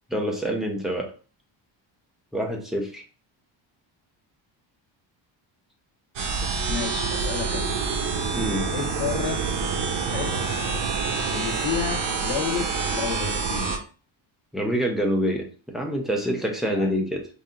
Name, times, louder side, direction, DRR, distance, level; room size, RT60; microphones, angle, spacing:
voice 1, 0.1-1.1 2.3-3.0 8.3-8.7 14.5-17.3, equal, ahead, 0 dB, 0.7 m, -26 dB
sound 1, 6.2-13.8, right 4 dB, 60° right, 1.2 m, -27 dB
voice 2, 6.7-7.7 8.7-9.4 10.1-10.4 11.3-13.8 16.7-17.1, left 8 dB, 70° left, 1 dB, 1.1 m, -31 dB
3.8 x 2.8 x 3.7 m, 0.38 s
cardioid pair, 160°, 47 cm